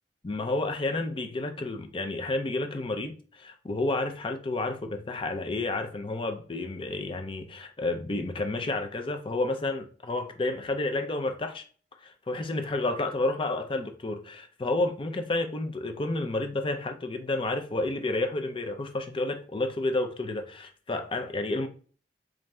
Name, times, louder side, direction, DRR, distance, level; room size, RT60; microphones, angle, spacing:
voice 1, 0.2-11.6 12.0-21.7, left 2 dB, 30° left, 0.5 m, -30 dB
3.4 x 2.5 x 4.2 m
head